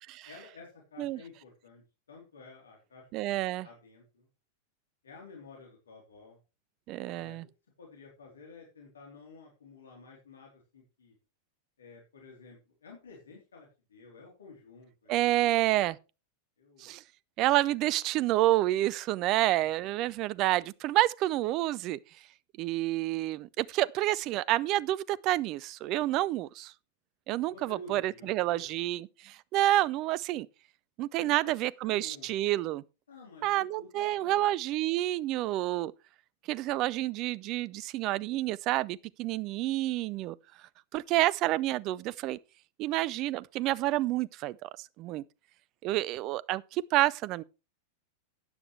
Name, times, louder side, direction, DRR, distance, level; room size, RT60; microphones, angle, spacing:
voice 1, 0.3-3.3 3.6-4.3 5.0-6.4 7.0-7.5 7.8-11.1 11.8-15.9 16.6-16.9 19.4-20.1 27.4-28.7 31.2-32.4 33.1-34.5, left 3 dB, 70° left, 3.5 m, -52 dB
voice 2, 3.1-3.7 6.9-7.4 15.1-16.0 16.8-17.0 17.4-22.0 22.6-26.7 27.3-30.5 31.0-32.8 33.4-35.9 36.5-40.4 40.9-42.4 42.8-45.2 45.8-47.4, right 15 dB, 40° right, 0.6 m, -29 dB
13.0 x 9.9 x 3.3 m
figure-of-eight pair, 90°, 0 cm